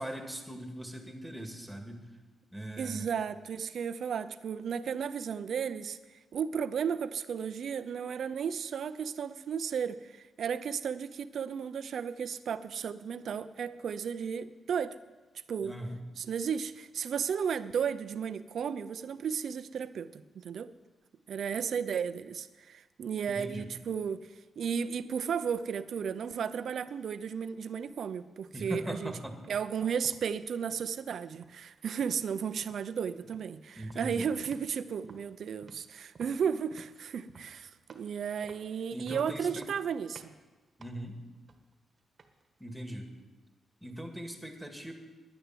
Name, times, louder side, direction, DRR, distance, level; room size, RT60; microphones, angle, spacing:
voice 1, 0.0-2.0 2.5-3.1 15.6-16.0 23.3-23.7 28.5-29.4 33.8-34.3 38.9-39.7 40.8-41.2 42.6-43.1 43.8-44.9, equal, 5° right, 3 dB, 2.1 m, -40 dB
voice 2, 2.8-6.0 6.3-15.0 15.5-15.7 16.2-20.7 21.3-29.1 29.5-40.3, right 7 dB, 65° right, 12 dB, 0.7 m, -34 dB
sound 1, 29.3-29.6 30.0-30.9 31.3-32.3 32.6-32.9 33.2-33.5 33.8-34.8 35.0-38.1 38.4-39.2 39.5-39.9 40.1-40.4 40.8-42.5, right 4 dB, 45° right, 1.3 m, -55 dB
11.0 x 10.0 x 9.1 m, 1.2 s
cardioid pair, 120°, 0 cm